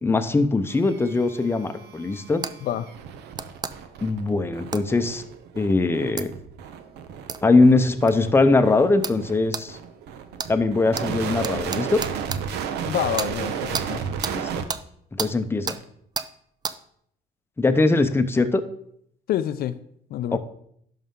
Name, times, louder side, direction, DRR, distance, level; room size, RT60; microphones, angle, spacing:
voice 1, 0.0-2.4 4.0-5.2 5.6-6.3 7.4-9.8 10.5-12.0 14.3-14.6 15.1-15.8 17.6-18.6 20.3-20.4, left 3 dB, 15° left, 8 dB, 0.7 m, -21 dB
sound 1, 0.7-14.6 15.7-15.8, right 7 dB, 80° right, 0.9 m, -34 dB
sound 2, 2.4-2.6 3.4-3.7 4.7-4.9 6.2-6.3 7.3-7.4 8.1-8.2 9.0-9.2 9.5-9.7 10.4-10.5 11.0-11.1 11.4-12.4 13.2-13.3 13.7-13.9 14.2-14.4 14.7-14.8 15.2-15.3 15.7-15.8 16.2-16.3 16.6-16.8, right 5 dB, 25° right, 0.4 m, -30 dB
voice 2, 12.8-14.0 19.3-19.7 20.1-20.4, left 11 dB, 65° left, 11 dB, 0.5 m, -27 dB
11.0 x 5.6 x 3.7 m, 0.68 s
cardioid pair, 110°, 17 cm